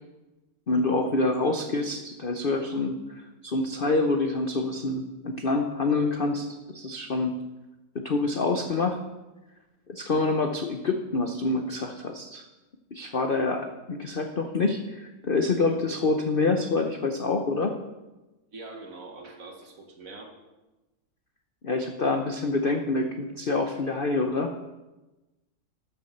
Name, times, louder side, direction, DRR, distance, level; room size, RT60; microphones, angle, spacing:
voice 1, 0.7-7.4 7.9-9.0 9.9-12.4 12.9-17.8 21.6-24.6, left 3 dB, 50° left, 5 dB, 0.7 m, -27 dB
voice 2, 18.5-20.3, right 3 dB, 50° right, 3 dB, 1.9 m, -43 dB
13.0 x 7.3 x 6.6 m, 1.1 s
omnidirectional pair, 2.0 m